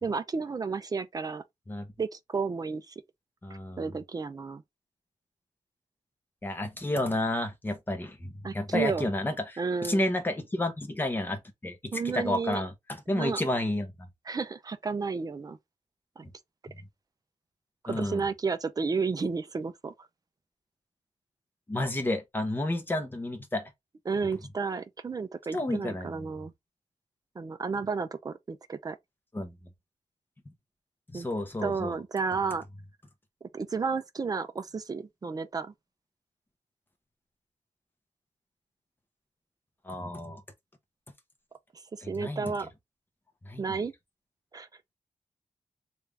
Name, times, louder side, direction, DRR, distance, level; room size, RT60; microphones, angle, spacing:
voice 1, 0.0-1.4 2.0-2.9 3.8-4.6 8.4-9.1 9.6-10.0 11.9-12.6 13.1-13.4 14.3-15.6 16.2-16.3 17.8-19.9 24.1-26.5 27.4-29.0 31.1-31.3 31.6-32.6 33.4-35.7 41.9-42.7 43.6-43.9 44.5-44.7, right 4 dB, 30° right, 0.4 m, -32 dB
voice 2, 3.4-3.8 6.4-13.9 17.9-18.2 21.7-23.6 25.5-26.3 29.3-29.5 31.1-32.0 39.8-40.4 42.0-42.5 43.4-43.8, left 1 dB, 15° left, 0.8 m, -31 dB
3.4 x 2.5 x 3.3 m
wide cardioid pair, 165°, 13 cm